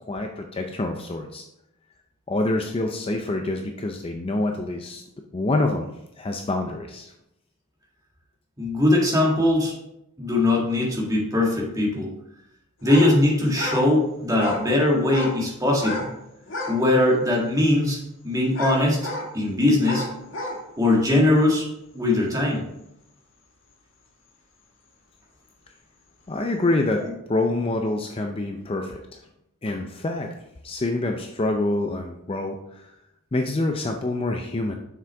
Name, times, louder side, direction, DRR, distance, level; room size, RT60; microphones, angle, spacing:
voice 1, 0.1-1.4 2.3-5.0 5.3-5.9 6.2-7.1 26.3-29.2 29.6-30.3 30.6-32.9 33.3-34.8, left 2 dB, 25° left, 3 dB, 0.5 m, -26 dB
voice 2, 8.6-9.7 10.2-12.1 12.8-16.1 16.7-18.0 18.2-19.1 19.3-20.1 20.8-21.7 21.9-22.7, left 1 dB, 15° right, -2 dB, 1.7 m, -21 dB
sound 1, 12.8-13.1 13.5-13.9 14.3-14.7 15.0-15.4 15.7-16.1 16.4-16.8 17.3-17.4 18.5-19.3 19.8-20.6, left 2 dB, 60° left, 1.5 m, -31 dB
7.4 x 6.0 x 3.4 m, 0.83 s
head